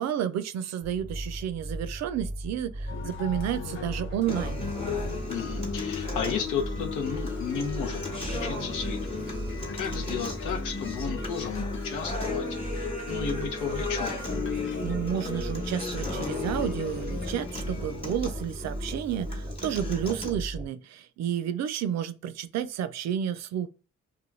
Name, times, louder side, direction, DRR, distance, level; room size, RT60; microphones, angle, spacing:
voice 1, 0.0-4.6 14.5-23.7, right 9 dB, 60° right, 0.5 m, -31 dB
sound 1, 0.8-20.7, right 1 dB, 5° right, 0.4 m, -37 dB
sound 2, 2.9-18.0, left 6 dB, 40° left, 0.6 m, -42 dB
Acoustic guitar, 4.3-20.3, left 3 dB, 20° left, 1.0 m, -35 dB
voice 2, 5.3-8.0 8.3-9.1 9.7-12.5 12.7-14.2, left 6 dB, 90° left, 0.7 m, -33 dB
2.4 x 2.2 x 3.1 m
cardioid pair, 90°, 30 cm